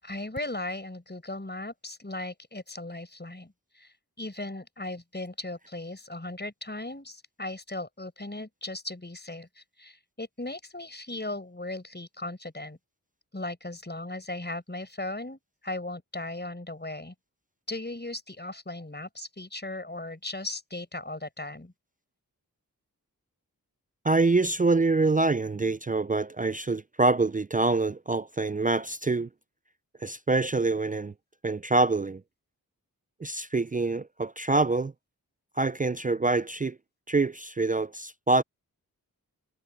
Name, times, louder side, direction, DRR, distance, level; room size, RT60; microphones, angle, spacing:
voice 1, 0.0-12.8 13.3-17.1 17.7-21.7, left 2 dB, 25° left, 5.6 m, -37 dB
voice 2, 24.0-29.3 30.0-31.1 31.4-32.2 33.2-34.9 35.6-36.8 37.1-38.4, right 3 dB, 25° right, 0.4 m, -25 dB
cardioid pair, 40°, 37 cm